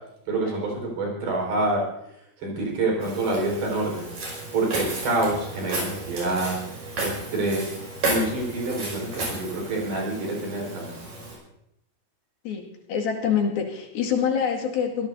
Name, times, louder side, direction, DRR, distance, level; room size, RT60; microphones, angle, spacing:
voice 1, 0.3-1.8 2.4-4.1 4.5-6.6 7.0-7.7 8.0-10.9, right 2 dB, 85° right, -1 dB, 6.8 m, -27 dB
Walk footsteps, 3.0-11.3, right 2 dB, 60° right, 7.6 m, -33 dB
voice 2, 12.4-15.1, left 7 dB, 75° left, 1 dB, 3.9 m, -26 dB
25.0 x 17.0 x 2.7 m, 0.80 s
omnidirectional pair, 4.3 m